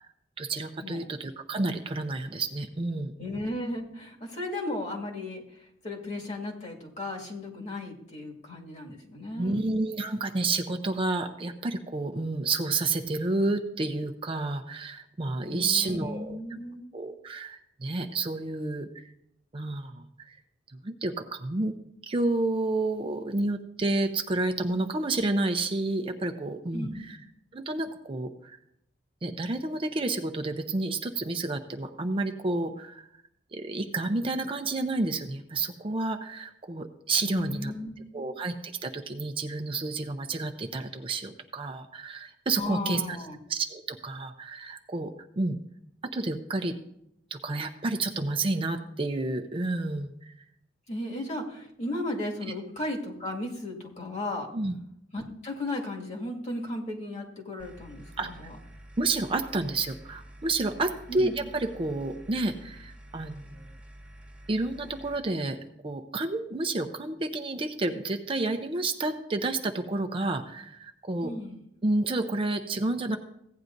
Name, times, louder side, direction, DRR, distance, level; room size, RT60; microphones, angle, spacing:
voice 1, 0.4-3.1 9.4-16.4 16.9-19.1 19.5-20.4 20.8-21.7 22.0-27.2 27.5-28.6 29.2-33.1 33.5-37.7 38.1-43.2 43.5-45.6 46.1-46.8 47.3-50.3 54.5-54.8 58.2-58.5 59.0-63.5 64.5-65.6 65.8-71.3 71.8-73.2, right 2 dB, 30° right, 6 dB, 0.5 m, -30 dB
voice 2, 3.2-5.4 5.8-9.6 15.5-16.9 26.7-27.1 37.2-38.3 42.5-43.4 50.9-54.5 55.1-58.6 61.1-61.3 71.2-71.6, left 1 dB, 40° left, -1 dB, 2.0 m, -35 dB
sound 1, 57.6-65.2, right 1 dB, 5° right, 1.0 m, -49 dB
16.0 x 9.4 x 2.6 m, 0.76 s
head